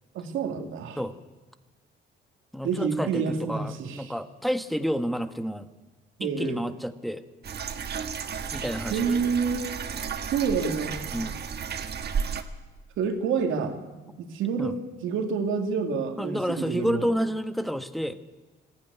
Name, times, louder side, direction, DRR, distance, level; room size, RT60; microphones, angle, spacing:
voice 1, 0.1-1.0 2.6-4.1 6.2-6.6 8.9-9.7 10.3-11.0 13.0-13.8 14.2-17.1, right 5 dB, 85° right, 5 dB, 2.3 m, -28 dB
voice 2, 2.5-5.7 6.2-7.2 8.5-9.1 11.1-11.4 14.6-14.7 16.2-18.2, equal, ahead, 10 dB, 1.3 m, -30 dB
sound 1, 7.4-12.4, right 7 dB, 55° right, 1.6 m, -33 dB
19.5 x 15.0 x 9.6 m, 1.2 s
cardioid pair, 90°, 20 cm